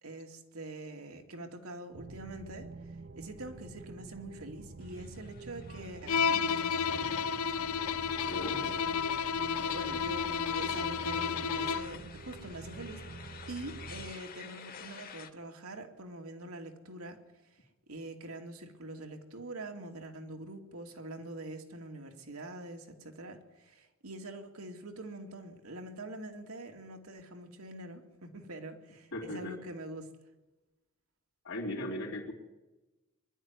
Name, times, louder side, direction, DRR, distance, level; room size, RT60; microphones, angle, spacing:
voice 1, 0.0-2.7 3.1-7.4 8.6-8.7 9.5-13.0 13.5-17.2 17.5-17.6 17.9-30.1, right 2 dB, 85° right, 4 dB, 2.5 m, -45 dB
sound 1, 1.9-14.1, right 3 dB, 50° right, 0.7 m, -47 dB
sound 2, 4.8-15.3, left 6 dB, 45° left, 1.5 m, -51 dB
Bowed string instrument, 6.1-12.0, left 6 dB, 85° left, 0.7 m, -31 dB
voice 2, 8.3-8.9 29.1-29.6 31.4-32.3, left 1 dB, 70° left, -1 dB, 3.4 m, -38 dB
22.5 x 12.0 x 9.7 m, 1.1 s
head